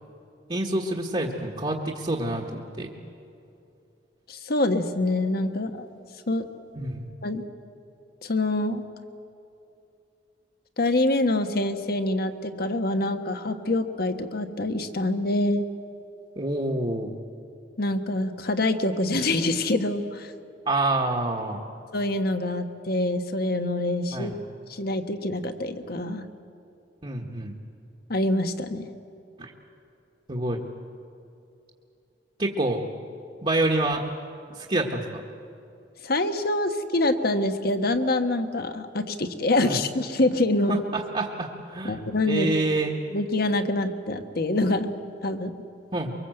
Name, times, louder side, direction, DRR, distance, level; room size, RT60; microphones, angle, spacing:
voice 1, 0.5-2.9 6.8-7.1 16.3-17.1 20.7-21.6 24.1-24.4 27.0-27.5 29.4-29.5 30.3-30.6 32.4-32.8 33.4-34.0 34.5-35.2 39.6-39.8 40.7-42.0 42.3-42.9 45.9-46.1, right 2 dB, 35° right, -1 dB, 1.5 m, -27 dB
voice 2, 4.3-5.9 6.3-6.4 7.2-7.4 8.2-8.8 10.8-15.7 17.8-20.3 21.9-24.3 24.7-26.2 28.1-28.9 36.0-40.8 41.8-42.5 43.1-44.9 45.2-45.5, left 2 dB, 55° left, 7 dB, 1.3 m, -25 dB
24.0 x 23.0 x 7.9 m, 2.7 s
head